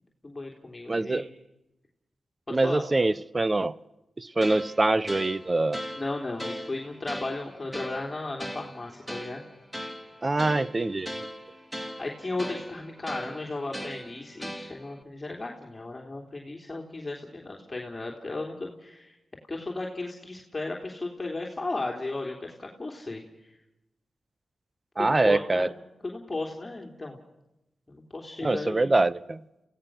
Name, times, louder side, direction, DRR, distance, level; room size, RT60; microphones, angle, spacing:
voice 1, 0.2-1.2 2.5-2.8 6.0-9.4 12.0-19.2 19.5-23.2 25.0-25.7 26.0-27.2 27.9-28.9, left 2 dB, 30° left, 3.3 m, -35 dB
voice 2, 0.9-1.3 2.5-3.8 4.2-5.8 10.2-11.3 25.0-25.7 28.4-29.4, right 2 dB, 35° right, 0.8 m, -24 dB
sound 1, 4.4-15.0, equal, 5° right, 2.4 m, -40 dB
27.5 x 17.0 x 6.4 m
cardioid pair, 50°, 0 cm